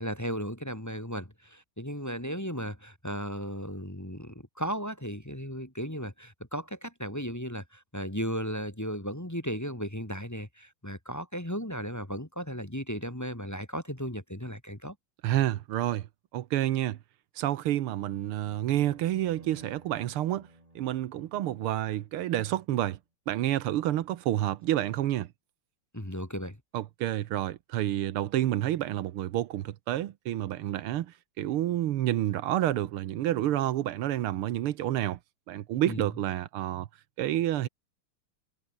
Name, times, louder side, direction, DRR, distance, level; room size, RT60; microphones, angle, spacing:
voice 1, 0.0-15.0 25.9-26.6 35.9-36.1, equal, 10° left, 1.9 m, -35 dB
voice 2, 15.2-16.1 16.3-17.0 17.4-20.5 20.8-23.0 23.3-25.3 26.7-35.2 35.5-36.9 37.2-37.7, right 13 dB, 85° right, 1.8 m, -29 dB
sound 1, 18.1-22.4, right 1 dB, 15° right, 4.5 m, -54 dB
omnidirectional pair, 2.4 m